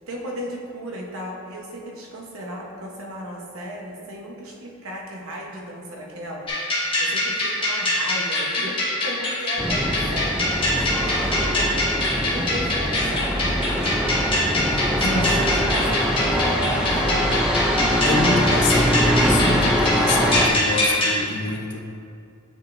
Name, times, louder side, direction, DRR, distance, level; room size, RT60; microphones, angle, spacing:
voice 1, 0.1-11.7 12.2-13.9 14.9-17.2, equal, 85° right, -1 dB, 1.0 m, -36 dB
sound 1, 6.5-21.2, left 1 dB, 25° left, 1.2 m, -24 dB
sound 2, 9.6-20.5, equal, 5° right, 0.4 m, -23 dB
voice 2, 14.6-15.3 18.0-21.8, left 3 dB, 55° left, 2 dB, 0.6 m, -27 dB
8.9 x 5.0 x 2.6 m, 2.4 s
head